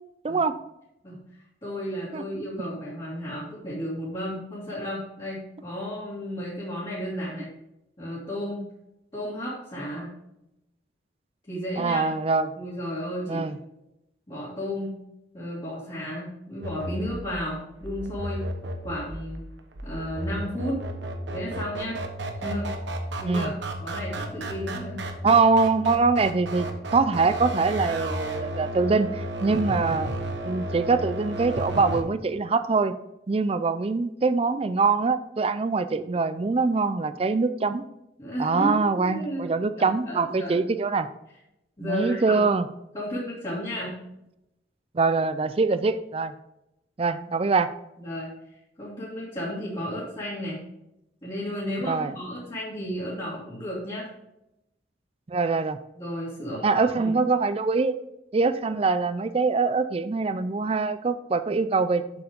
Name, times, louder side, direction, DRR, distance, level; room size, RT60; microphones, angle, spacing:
voice 1, 1.6-7.5 8.0-8.6 9.1-10.1 11.5-12.0 12.6-13.4 14.3-14.9 15.3-18.4 18.8-19.4 19.8-20.8 21.3-22.0 22.4-22.7 23.2-23.5 23.8-25.0 38.2-40.7 41.8-42.4 42.9-43.9 48.0-48.3 48.8-50.6 51.2-54.1 55.9-57.1, equal, 25° left, -8 dB, 2.3 m, -33 dB
voice 2, 11.8-12.5 13.3-13.6 23.2-23.5 25.2-30.1 30.4-32.9 33.3-37.8 38.4-41.1 41.8-42.7 44.9-46.3 47.0-47.7 51.8-52.1 55.3-55.8 56.6-57.9 58.3-62.2, right 4 dB, 30° right, 12 dB, 0.4 m, -24 dB
sound 1, 16.6-32.0, right 1 dB, 70° right, 1.1 m, -33 dB
7.8 x 7.0 x 3.6 m, 0.86 s
head